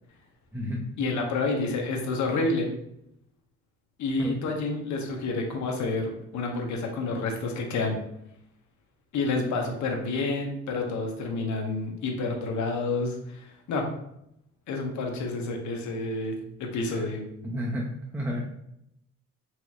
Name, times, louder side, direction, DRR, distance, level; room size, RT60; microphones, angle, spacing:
voice 1, 1.0-2.7 4.0-7.9 9.1-13.9 14.7-17.2, left 3 dB, 70° left, 2 dB, 0.8 m, -29 dB
voice 2, 17.4-17.9 18.1-18.5, equal, 5° right, -3 dB, 0.5 m, -31 dB
4.2 x 2.9 x 2.3 m, 0.78 s
cardioid pair, 90°, 30 cm